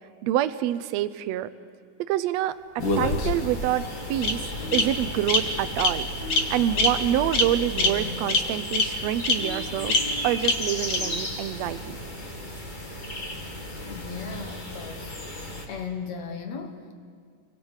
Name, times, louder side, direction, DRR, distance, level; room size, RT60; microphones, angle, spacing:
voice 1, 0.2-1.5 2.0-3.8 4.1-4.4 4.7-6.1 6.5-10.0 10.2-11.8, right 12 dB, 90° right, 12 dB, 1.5 m, -26 dB
Bird vocalization bird call bird song, 2.8-3.6 4.2-4.3 4.7-4.8 5.3-5.4 5.8-5.9 6.3-6.4 6.8-6.9 7.3-7.5 7.8-7.9 8.3-8.4 8.7-8.8 9.2-9.3 9.9-10.0 10.4-10.5 10.9-11.0, left 3 dB, 45° left, 1.7 m, -22 dB
sound 1, 2.8-15.7, left 1 dB, 20° left, 1.4 m, -35 dB
sound 2, 4.5-5.9 6.1-11.4, equal, 5° right, 4.3 m, -42 dB
voice 2, 13.8-15.2 15.7-16.9, left 5 dB, 60° left, 6 dB, 2.3 m, -36 dB
29.0 x 23.5 x 4.9 m, 2.1 s
omnidirectional pair, 3.9 m